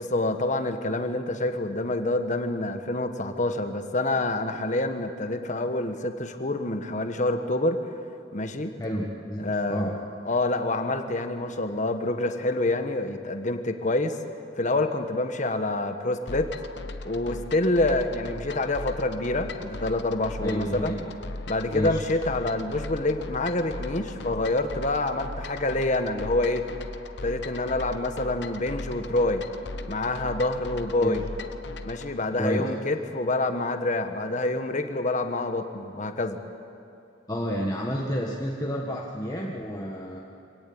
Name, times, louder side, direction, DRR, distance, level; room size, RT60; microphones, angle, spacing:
voice 1, 0.0-7.8 8.3-8.8 9.4-10.0 10.2-14.2 14.6-16.5 17.0-21.0 21.5-26.6 27.2-29.4 29.9-31.2 31.8-36.4, left 2 dB, 40° left, 7 dB, 1.4 m, -27 dB
voice 2, 8.8-10.0 20.4-21.1 21.7-22.0 31.0-31.1 32.4-32.7 37.3-40.2, equal, 20° left, -2 dB, 1.6 m, -30 dB
sound 1, 16.3-32.1, left 2 dB, 65° left, 1.0 m, -38 dB
25.5 x 17.5 x 8.8 m, 2.7 s
head